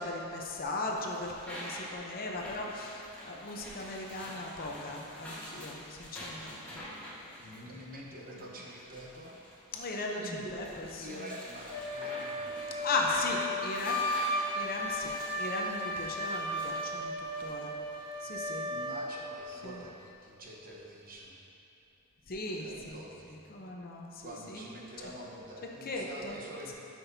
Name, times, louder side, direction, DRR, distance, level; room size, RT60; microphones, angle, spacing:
voice 1, 0.0-6.9 9.7-11.3 12.8-14.0 14.5-17.7 18.2-18.7 19.6-19.8 22.3-23.0 23.5-24.7 25.8-26.4, left 2 dB, 40° left, 0 dB, 0.7 m, -37 dB
sound 1, 0.7-18.1, equal, 5° left, 1.4 m, -47 dB
voice 2, 7.4-9.4 10.0-10.5 11.0-12.8 18.7-21.4 22.5-23.4 24.2-26.7, equal, 40° right, -3 dB, 1.1 m, -46 dB
Wind instrument woodwind instrument, 11.7-19.1, equal, 85° left, 1.2 m, -35 dB
12.0 x 6.0 x 2.7 m, 2.7 s
head